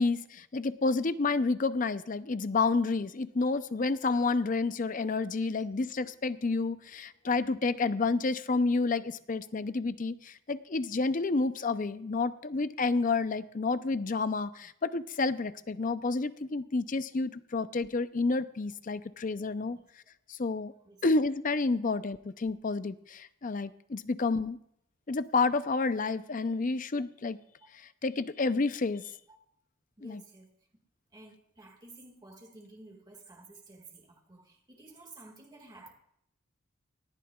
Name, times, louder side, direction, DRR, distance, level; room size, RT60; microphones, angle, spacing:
voice 1, 0.0-19.8 20.3-20.7 21.0-24.6 25.1-27.4 27.7-29.0 30.0-30.2, left 3 dB, 40° left, 13 dB, 0.5 m, -30 dB
voice 2, 30.0-30.5 31.1-35.9, right 2 dB, 20° right, 0 dB, 1.9 m, -53 dB
19.0 x 14.5 x 2.4 m, 0.72 s
head